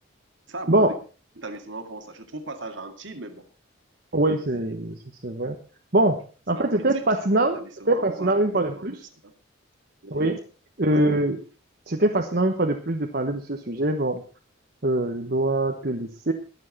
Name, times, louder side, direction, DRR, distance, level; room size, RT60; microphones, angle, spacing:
voice 1, 0.5-1.0 1.4-3.5 6.5-7.0 7.4-8.8 9.2-9.3 10.0-10.2 10.9-11.0, right 2 dB, 65° right, 6 dB, 2.1 m, -38 dB
voice 2, 4.1-5.6 5.9-6.2 6.5-9.0 10.1-10.4 10.8-11.4 11.9-14.2 14.8-16.3, right 1 dB, 50° right, 3 dB, 1.2 m, -23 dB
22.0 x 7.5 x 4.2 m, 0.36 s
head